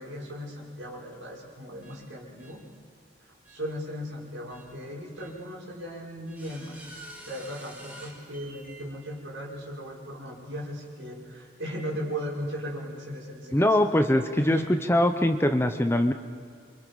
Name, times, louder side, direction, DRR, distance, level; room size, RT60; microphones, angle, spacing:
voice 1, 0.0-2.6 3.2-6.8 7.2-13.8 14.4-14.7, equal, 80° right, -4 dB, 5.7 m, -37 dB
sound 1, 1.8-1.9 2.4-2.5 3.4-3.6 4.5-4.6 5.2-5.3 6.3-8.8, right 1 dB, 10° right, 4.1 m, -47 dB
voice 2, 13.5-14.6 14.9-16.1, left 1 dB, 10° left, 7 dB, 0.8 m, -22 dB
28.0 x 25.0 x 5.4 m, 2.3 s
head